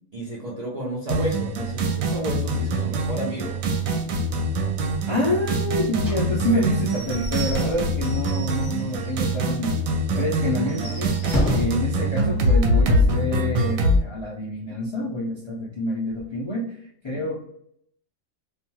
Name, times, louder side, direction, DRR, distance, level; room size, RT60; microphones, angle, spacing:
voice 1, 0.1-3.6 17.1-17.2, equal, 50° right, -5 dB, 0.4 m, -31 dB
sound 1, 1.1-14.0, right 1 dB, 80° right, 1.0 m, -24 dB
voice 2, 5.1-9.8 10.2-17.4, left 1 dB, 50° left, -5 dB, 0.3 m, -27 dB
Slam / Squeak / Wood, 6.0-9.2 9.6-9.7 10.0-10.1 10.6-11.9, equal, ahead, 0.9 m, -30 dB
2.5 x 2.2 x 2.8 m, 0.69 s
omnidirectional pair, 1.4 m